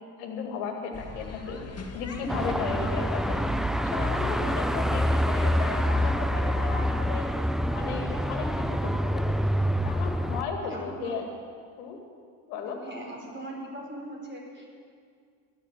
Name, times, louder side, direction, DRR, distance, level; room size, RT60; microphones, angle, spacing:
voice 1, 0.2-7.3 7.7-9.4 9.8-11.2 11.8-12.0 12.5-12.8, left 5 dB, 75° left, 3 dB, 2.2 m, -35 dB
sound 1, 0.9-6.1, left 3 dB, 30° left, 1.7 m, -41 dB
Car passing by / Traffic noise roadway noise / Engine, 2.3-10.4, equal, ahead, 0.5 m, -26 dB
voice 2, 10.7-11.1 12.6-14.7, right 1 dB, 25° right, -1 dB, 4.2 m, -40 dB
13.5 x 7.3 x 9.6 m, 2.1 s
hypercardioid pair, 55°, 48 cm